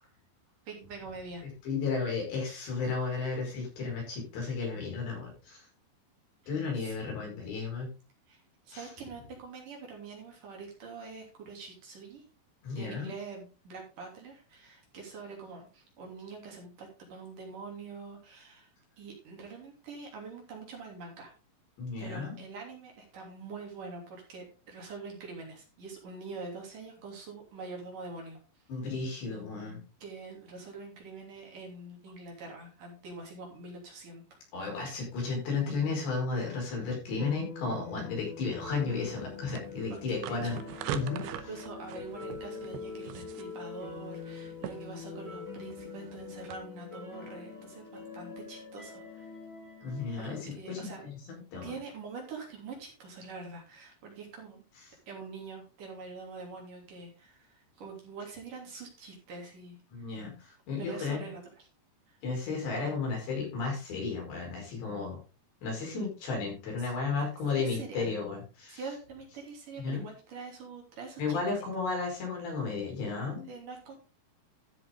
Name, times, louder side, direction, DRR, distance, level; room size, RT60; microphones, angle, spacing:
voice 1, 0.7-1.4 6.8-7.4 8.3-12.2 12.8-18.7 19.0-21.3 22.0-28.4 30.0-34.2 39.9-40.7 41.2-49.3 50.2-51.0 51.6-54.6 55.1-59.8 60.8-61.7 62.1-62.2 66.8-66.9 67.5-68.1 68.7-71.6 73.5-74.0, right 4 dB, 50° right, 0 dB, 4.4 m, -45 dB
voice 2, 1.7-5.7 6.5-7.9 8.7-8.9 12.6-13.1 21.8-22.4 28.7-29.8 34.5-40.6 40.9-41.2 49.8-51.1 51.5-51.7 59.9-61.2 62.2-65.2 65.6-68.8 69.8-70.1 71.2-73.5, left 4 dB, 75° left, 0 dB, 7.2 m, -33 dB
sound 1, 37.2-50.4, left 5 dB, 5° left, 1.7 m, -44 dB
sound 2, 38.7-46.6, right 10 dB, 75° right, 2.7 m, -43 dB
13.0 x 7.6 x 3.8 m, 0.32 s
omnidirectional pair, 5.0 m